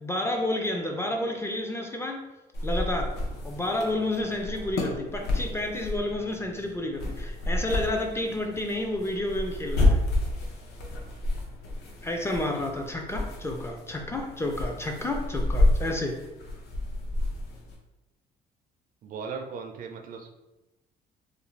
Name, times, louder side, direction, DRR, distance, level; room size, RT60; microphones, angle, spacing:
voice 1, 0.0-2.2 2.6-3.1 3.4-10.0 12.0-16.2, left 1 dB, 15° left, 2 dB, 0.4 m, -30 dB
sound 1, 2.5-17.7, left 2 dB, 75° left, 0.7 m, -30 dB
voice 2, 19.0-20.3, right 5 dB, 55° right, 4 dB, 0.4 m, -37 dB
2.5 x 2.3 x 3.0 m, 1.0 s
cardioid pair, 110°, 17 cm